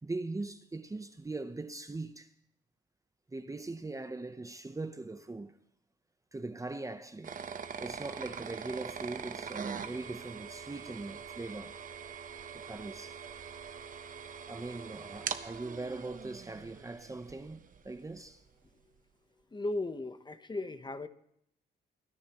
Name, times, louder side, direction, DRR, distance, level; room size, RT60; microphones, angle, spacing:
voice 1, 0.0-2.3 3.3-5.6 6.3-7.4 7.8-11.8 12.5-13.2 14.4-18.4, right 2 dB, 15° right, 0.8 m, -41 dB
sound 1, 7.2-18.0, right 6 dB, 40° right, 0.9 m, -43 dB
voice 2, 19.5-21.1, left 2 dB, 20° left, 0.9 m, -36 dB
23.5 x 14.0 x 3.0 m
cardioid pair, 90°, 20 cm